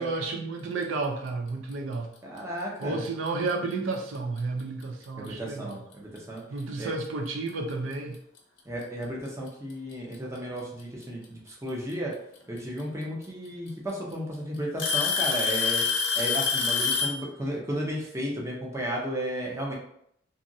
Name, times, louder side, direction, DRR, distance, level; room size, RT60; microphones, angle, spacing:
voice 1, 0.0-2.1 2.8-5.8 6.5-8.2, right 3 dB, 85° right, 3 dB, 0.4 m, -31 dB
voice 2, 2.2-3.0 5.2-6.4 6.8-6.9 8.6-12.1 12.5-15.8 16.1-19.7, equal, 15° right, -3 dB, 0.6 m, -34 dB
Alarm / Tick-tock, 3.3-3.5 4.4-4.5 5.3-5.4 7.0-7.1 8.4-8.5 9.7-10.1 11.9-12.0 13.2-13.3 13.7-14.1 14.8-17.2, left 5 dB, 70° left, 0.7 m, -26 dB
2.9 x 2.4 x 2.6 m, 0.72 s
head